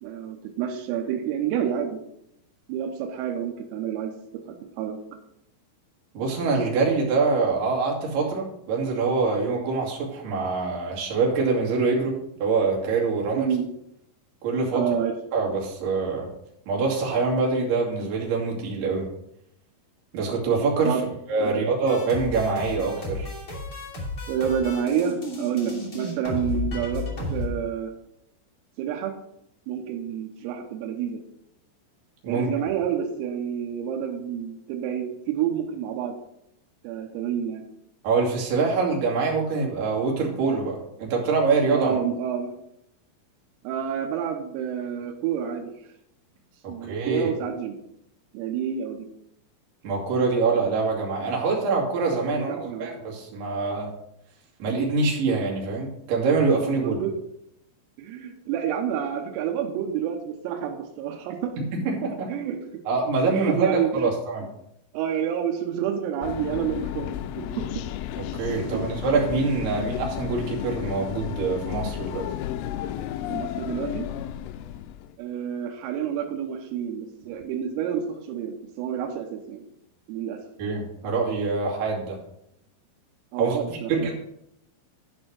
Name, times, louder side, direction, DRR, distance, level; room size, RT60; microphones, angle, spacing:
voice 1, 0.0-2.0 2.7-5.0 13.4-13.7 14.7-15.1 20.9-21.7 24.3-27.9 28.8-29.1 29.7-31.2 32.3-36.2 36.8-37.6 41.7-42.6 43.7-45.7 46.7-47.8 48.3-49.1 52.3-52.9 56.8-57.1 58.0-61.5 62.3-62.6 63.3-64.1 64.9-67.7 68.6-68.8 69.7-69.9 73.3-74.1 75.2-79.7 80.1-80.4 83.3-84.1, right 8 dB, 90° right, 2 dB, 3.5 m, -29 dB
voice 2, 6.1-13.5 14.4-14.8 15.3-16.3 16.7-19.1 20.1-21.0 21.3-23.3 32.2-32.5 38.0-42.0 46.6-47.3 49.8-53.9 54.6-57.0 61.7-62.3 62.9-64.5 68.2-72.3 80.6-82.2 83.4-84.1, right 4 dB, 60° right, -3 dB, 3.8 m, -25 dB
sound 1, 21.9-27.5, left 2 dB, 25° left, 1.9 m, -32 dB
sound 2, 66.2-75.2, left 11 dB, 85° left, 2.7 m, -33 dB
11.0 x 4.4 x 6.3 m, 0.78 s
omnidirectional pair, 5.9 m